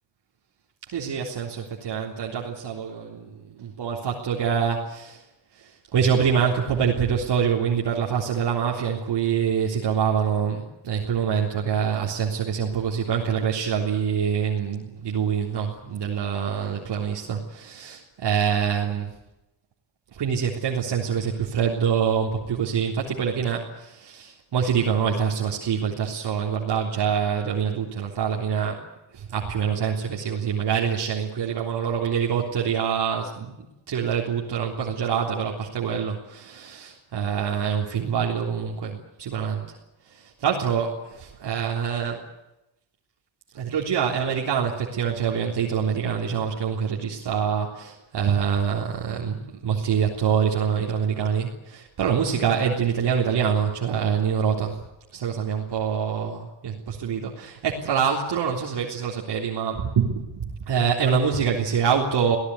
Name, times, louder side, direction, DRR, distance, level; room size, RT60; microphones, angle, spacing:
voice 1, 0.9-5.2 5.6-19.1 20.1-28.8 29.1-33.5 33.9-39.8 40.1-42.2 43.5-49.4 49.6-54.8 55.1-62.4, right 7 dB, 60° right, -1 dB, 3.6 m, -25 dB
25.0 x 17.5 x 9.7 m, 0.93 s
wide cardioid pair, 155°, 45 cm